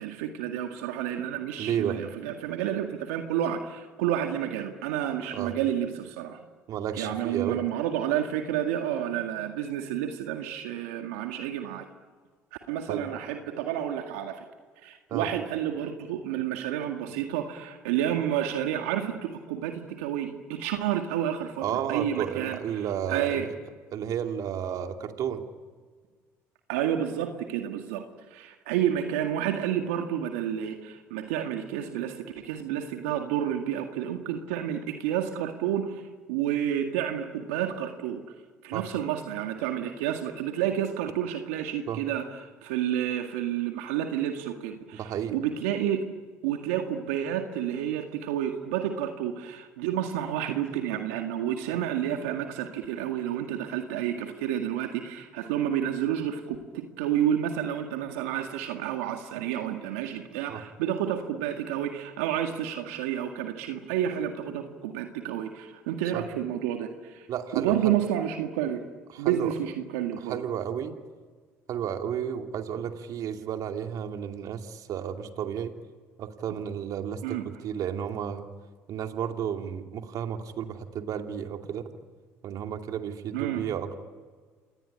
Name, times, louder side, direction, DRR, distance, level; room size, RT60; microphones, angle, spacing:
voice 1, 0.0-6.4 7.0-11.9 12.7-14.4 14.8-22.8 23.1-23.5 26.7-28.0 28.3-36.0 36.3-38.2 38.6-42.3 42.6-46.1 46.4-67.3 67.5-68.8 69.2-70.4 77.2-77.4 83.3-83.6, right 10 dB, 85° right, 4 dB, 2.0 m, -30 dB
voice 2, 1.6-2.0 5.3-5.5 6.7-7.6 12.9-13.0 15.1-15.3 21.6-23.5 23.9-25.4 38.7-38.8 41.9-42.0 44.9-45.4 60.5-60.6 66.1-66.2 67.3-68.0 69.1-69.5 70.2-71.0 71.7-75.7 76.2-78.5 78.9-81.9 82.4-83.9, right 9 dB, 60° right, 5 dB, 2.6 m, -32 dB
27.5 x 19.5 x 9.9 m, 1.5 s
hypercardioid pair, 75°, 7 cm